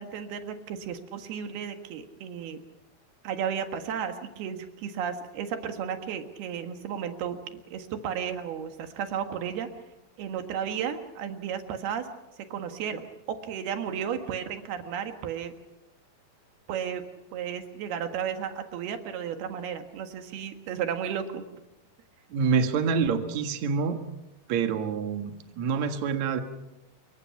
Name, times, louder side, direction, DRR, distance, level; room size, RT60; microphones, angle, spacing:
voice 1, 0.0-2.6 3.2-7.4 7.7-9.7 10.2-12.1 12.5-15.5 16.7-17.0 17.3-21.4, right 8 dB, 90° right, 7 dB, 3.6 m, -33 dB
voice 2, 22.3-24.0 24.5-26.4, right 6 dB, 55° right, 6 dB, 2.6 m, -26 dB
28.0 x 23.0 x 5.9 m, 0.92 s
omnidirectional pair, 4.3 m